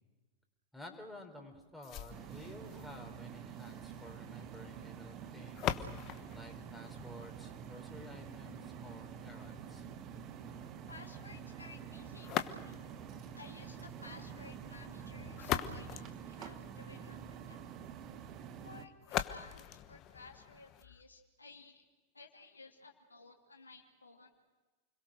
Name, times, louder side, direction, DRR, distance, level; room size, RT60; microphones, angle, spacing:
voice 1, 0.7-9.8, left 1 dB, ahead, 1 dB, 4.5 m, -52 dB
sound 1, 1.8-7.8 12.2-13.1 15.1-17.0 19.0-21.0, left 11 dB, 35° left, 1.2 m, -41 dB
sound 2, 2.1-18.8, right 7 dB, 35° right, 1.7 m, -48 dB
voice 2, 10.9-12.8 13.3-17.6 18.6-21.8 22.1-24.5, left 4 dB, 80° left, 2 dB, 2.6 m, -55 dB
29.5 x 22.5 x 6.5 m, 1.3 s
figure-of-eight pair, 90°, 0 cm